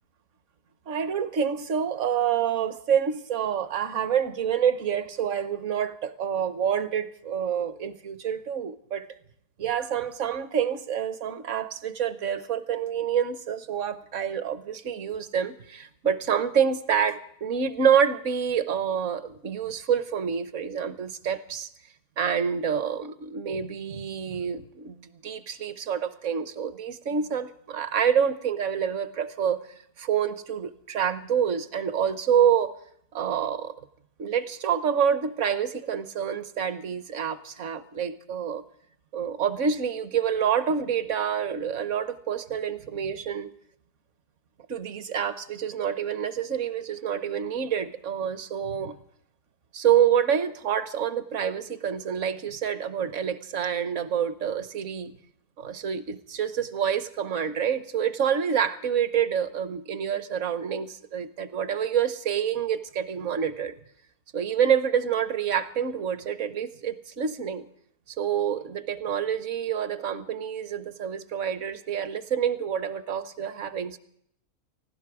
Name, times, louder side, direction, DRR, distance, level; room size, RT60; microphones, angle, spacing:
voice 1, 0.9-9.1 9.6-21.7 22.2-29.6 30.0-32.7 33.1-33.7 34.2-38.6 39.1-43.5 44.7-48.9 49.7-55.1 55.6-63.7 64.3-67.7 68.2-74.0, right 8 dB, 60° right, 14 dB, 1.1 m, -27 dB
18.0 x 16.0 x 4.8 m, 0.71 s
omnidirectional pair, 1.6 m